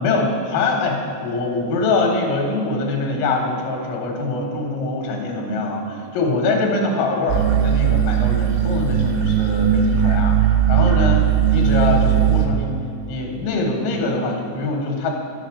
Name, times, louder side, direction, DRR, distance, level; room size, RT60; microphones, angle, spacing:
voice 1, 0.0-10.4 10.7-12.8 13.1-15.1, left 3 dB, 80° left, 1 dB, 3.7 m, -23 dB
sound 1, 7.3-12.5, right 9 dB, 75° right, 2.7 m, -18 dB
11.5 x 8.2 x 5.0 m, 2.5 s
omnidirectional pair, 5.4 m